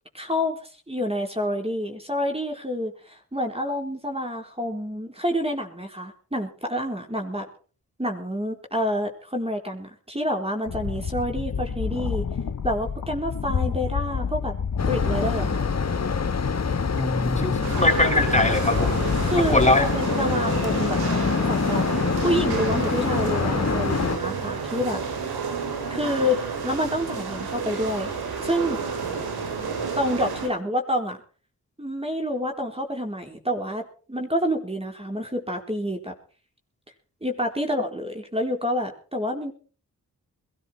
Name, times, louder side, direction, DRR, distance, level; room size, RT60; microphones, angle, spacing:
voice 1, 0.1-0.6 0.9-7.5 8.0-12.2 12.6-14.5 14.9-15.6 19.2-21.0 21.4-21.8 22.2-25.0 25.9-28.1 28.4-28.8 30.0-31.2 31.8-36.1 37.2-39.5, equal, 15° right, 3 dB, 4.3 m, -28 dB
sound 1, 10.7-19.9, left 6 dB, 60° left, 1.8 m, -29 dB
sound 2, 14.8-24.2, left 5 dB, 45° left, 1.6 m, -26 dB
voice 2, 17.0-19.0 19.4-19.9, left 2 dB, 20° left, 4 dB, 4.3 m, -21 dB
sound 3, 17.6-30.5, right 5 dB, 85° right, 3.9 m, -30 dB
21.5 x 13.5 x 4.6 m, 0.40 s
supercardioid pair, 40°, 37 cm